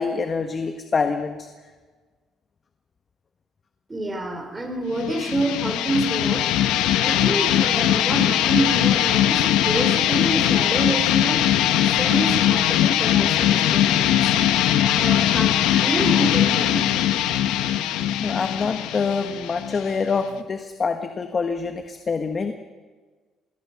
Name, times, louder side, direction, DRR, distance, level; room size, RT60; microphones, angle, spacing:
voice 1, 0.0-1.5 18.2-22.5, left 5 dB, 30° left, 6 dB, 1.4 m, -26 dB
voice 2, 3.9-6.5 7.0-11.4 12.0-14.6 14.9-16.9, right 2 dB, 15° right, 4 dB, 4.3 m, -27 dB
sound 1, 5.0-20.4, left 11 dB, 90° left, 1.4 m, -20 dB
26.0 x 21.0 x 6.1 m, 1.4 s
cardioid pair, 120°, 0 cm